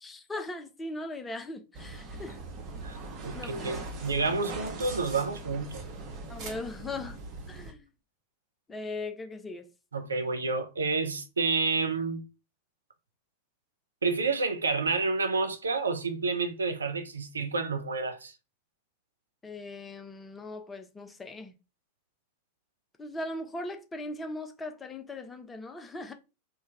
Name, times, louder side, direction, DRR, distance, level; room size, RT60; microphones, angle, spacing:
voice 1, 0.0-2.4 3.3-3.8 6.3-7.2 7.5-7.8 8.7-9.7 19.4-21.6 23.0-26.1, left 2 dB, 15° left, 0.5 m, -39 dB
sound 1, 1.7-7.7, right 3 dB, 40° right, 0.8 m, -41 dB
voice 2, 3.2-5.8 9.9-12.2 14.0-18.3, right 4 dB, 75° right, 0.5 m, -29 dB
3.1 x 2.2 x 3.3 m
figure-of-eight pair, 90°, 0 cm